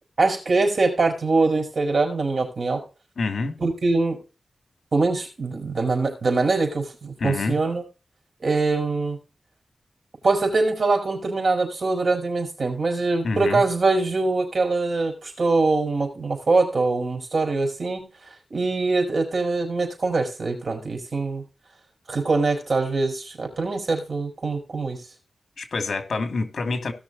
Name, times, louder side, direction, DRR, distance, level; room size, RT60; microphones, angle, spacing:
voice 1, 0.2-2.8 3.6-4.2 4.9-7.8 8.4-9.2 10.2-18.1 18.5-21.4 22.1-25.0, right 3 dB, 55° right, 5.0 m, -23 dB
voice 2, 3.2-3.6 7.2-7.6 13.2-13.6 25.6-26.9, left 3 dB, 65° left, 2.5 m, -27 dB
17.0 x 6.4 x 4.1 m
wide cardioid pair, 125°, 0 cm